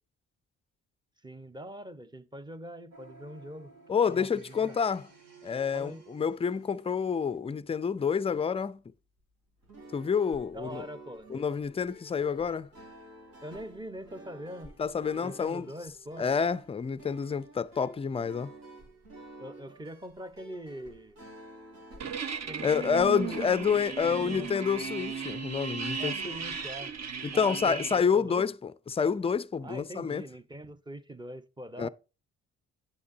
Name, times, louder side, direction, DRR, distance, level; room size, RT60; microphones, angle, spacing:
voice 1, 1.2-3.7 4.1-4.8 5.7-6.0 10.5-11.4 13.4-14.7 15.2-16.3 19.4-21.2 22.4-23.4 24.0-24.5 26.0-26.9 27.3-28.5 29.6-31.9, right 1 dB, 15° right, 0.8 m, -43 dB
sound 1, 2.9-7.4, right 4 dB, 65° right, 2.8 m, -56 dB
voice 2, 3.9-5.1 5.4-8.8 9.9-10.9 11.3-12.7 14.8-15.7 16.2-18.5 22.6-26.4 27.2-30.2 31.8-31.9, left 6 dB, 20° left, 0.4 m, -28 dB
sound 2, 9.6-25.6, right 2 dB, 80° right, 3.1 m, -51 dB
sound 3, 22.0-28.0, right 6 dB, 50° right, 1.0 m, -36 dB
8.5 x 6.7 x 2.6 m
supercardioid pair, 60°, 34 cm